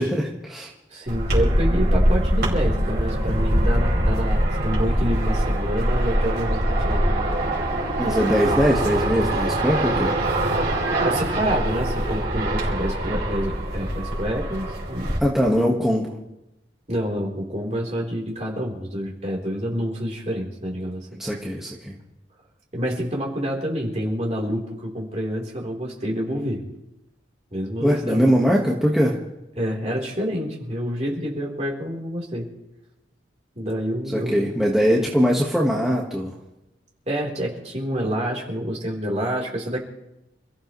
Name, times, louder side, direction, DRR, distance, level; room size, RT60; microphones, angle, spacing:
voice 1, 0.0-0.7 8.0-10.2 15.2-16.1 21.2-22.0 27.8-29.2 34.1-36.3, equal, ahead, -4 dB, 1.5 m, -21 dB
voice 2, 0.9-7.2 11.0-15.2 16.9-21.2 22.7-26.6 27.5-28.3 29.6-32.5 33.6-34.4 37.1-39.8, equal, 35° right, -2 dB, 3.8 m, -28 dB
sound 1, 1.1-15.2, right 1 dB, 55° right, 5.4 m, -23 dB
28.0 x 15.0 x 3.2 m, 0.92 s
head